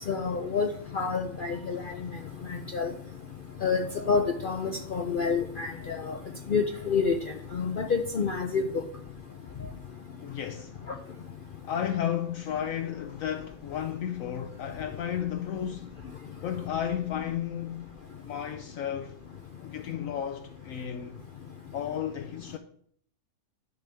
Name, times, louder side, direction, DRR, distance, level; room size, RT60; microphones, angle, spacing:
voice 1, 0.1-1.8 2.5-2.9 3.6-6.2 6.5-7.1 7.5-8.6, left 5 dB, 55° left, 0.6 m, -28 dB
voice 2, 10.2-10.7 11.6-16.0 16.4-17.9 18.2-19.2 19.6-21.2 21.7-22.6, left 9 dB, 70° left, 1.0 m, -33 dB
10.0 x 3.4 x 6.9 m
omnidirectional pair, 1.6 m